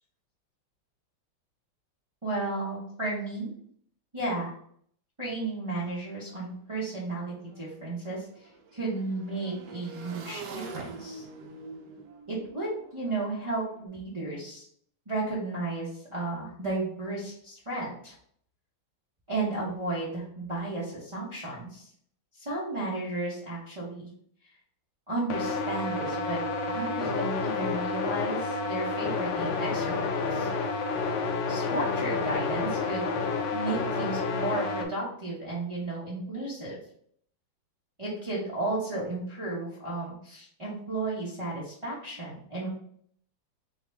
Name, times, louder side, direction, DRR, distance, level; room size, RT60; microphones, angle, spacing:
voice 1, 2.2-3.5 4.1-4.5 5.2-11.2 12.3-14.7 15.1-18.1 19.3-21.9 22.3-24.1 25.1-26.4 26.7-30.5 31.5-33.1 33.5-36.8 38.0-42.7, right 2 dB, 35° right, -7 dB, 0.5 m, -33 dB
Motorcycle / Engine, 6.3-6.4 6.6-13.8, right 4 dB, 75° right, 1.0 m, -45 dB
sound 1, 25.3-34.8, left 4 dB, 75° left, 1.2 m, -30 dB
3.5 x 2.3 x 4.3 m, 0.62 s
omnidirectional pair, 2.4 m